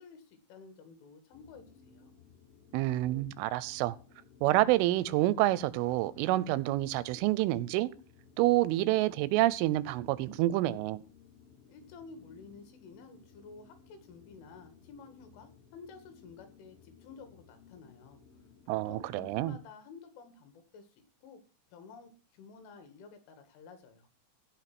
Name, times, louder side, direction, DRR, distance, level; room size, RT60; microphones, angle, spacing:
voice 1, 0.0-2.1 11.7-18.2 18.9-20.9 21.2-21.4 21.7-24.1, left 5 dB, 85° left, 4.4 m, -52 dB
sound 1, 1.3-19.6, left 6 dB, 60° left, 6.2 m, -59 dB
voice 2, 2.7-4.0 4.4-7.9 8.4-11.0 18.7-19.5, right 16 dB, 90° right, 3.2 m, -28 dB
16.5 x 5.5 x 6.0 m
omnidirectional pair, 5.5 m